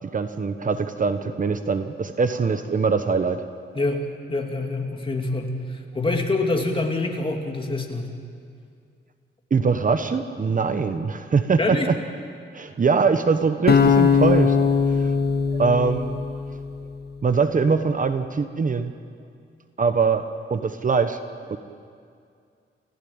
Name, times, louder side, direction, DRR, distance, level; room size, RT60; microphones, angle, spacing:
voice 1, 0.0-3.5 3.7-3.8 9.5-12.0 12.5-14.6 14.9-15.1 15.6-16.2 17.2-18.9 19.8-20.2 20.5-21.2 21.5-21.6, right 5 dB, 40° right, 9 dB, 1.0 m, -22 dB
voice 2, 4.3-8.1 11.6-11.9, left 2 dB, 25° left, 2 dB, 2.6 m, -25 dB
sound 1, 13.7-16.8, left 6 dB, 50° left, 1.5 m, -20 dB
29.0 x 15.0 x 8.8 m, 2.3 s
wide cardioid pair, 135°, 21 cm